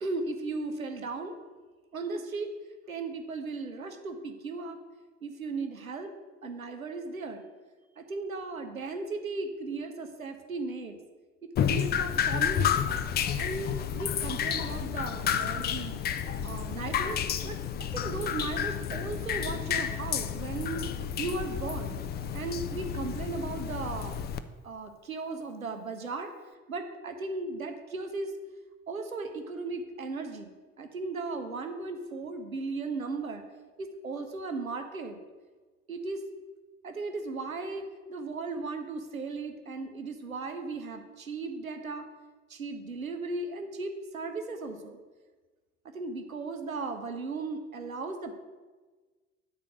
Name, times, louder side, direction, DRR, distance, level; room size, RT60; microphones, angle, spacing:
voice 1, 0.0-1.4 1.9-2.5 2.9-4.8 5.2-6.1 6.4-7.4 8.0-11.0 11.4-12.9 13.4-16.0 16.4-20.9 21.2-22.0 22.3-24.2 24.6-26.3 26.7-28.3 28.9-30.5 30.8-33.4 33.8-35.2 35.9-36.2 36.8-42.1 42.5-45.0 45.9-48.4, right 3 dB, 90° right, 6 dB, 0.7 m, -36 dB
Drip, 11.6-24.4, left 8 dB, 25° left, 0.4 m, -31 dB
9.1 x 4.4 x 6.2 m, 1.3 s
figure-of-eight pair, 55°, 40 cm